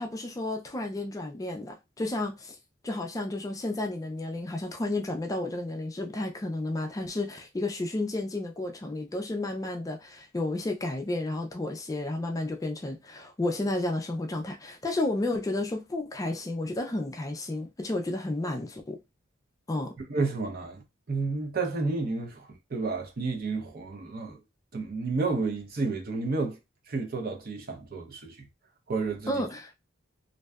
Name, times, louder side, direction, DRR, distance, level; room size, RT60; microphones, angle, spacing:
voice 1, 0.0-2.6 2.8-19.0 19.7-19.9 29.3-29.7, left 2 dB, 15° left, 0.3 m, -32 dB
voice 2, 20.0-24.4 24.7-26.6 26.9-28.5 28.9-29.4, right 3 dB, 50° right, 0.6 m, -31 dB
2.6 x 2.2 x 2.2 m
head